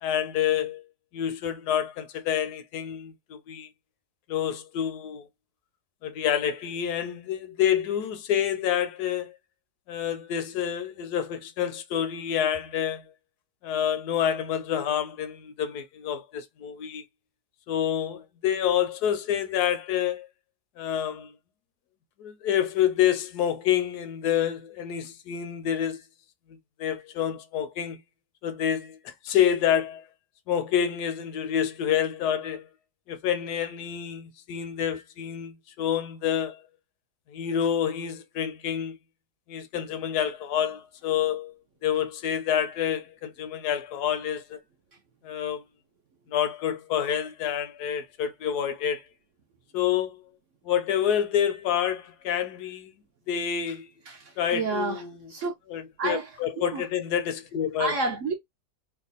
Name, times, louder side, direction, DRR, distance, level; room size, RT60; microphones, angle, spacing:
voice 1, 0.0-0.8 1.1-3.7 4.3-5.3 6.0-9.3 9.9-13.0 13.6-17.0 17.7-20.3 20.8-21.3 22.2-26.0 26.8-28.0 28.4-30.0 30.5-32.6 33.1-36.6 37.3-39.0 39.5-41.5 41.8-44.6 45.2-45.6 46.3-49.0 49.7-50.2 50.6-52.9 53.3-53.9 54.4-55.2 55.7-57.9, left 9 dB, 75° left, 1.1 m, -28 dB
voice 2, 54.1-55.0 55.3-55.5 56.0-56.3 56.7-56.8 57.8-58.4, right 4 dB, 65° right, 0.8 m, -29 dB
3.0 x 2.2 x 3.9 m
omnidirectional pair, 1.8 m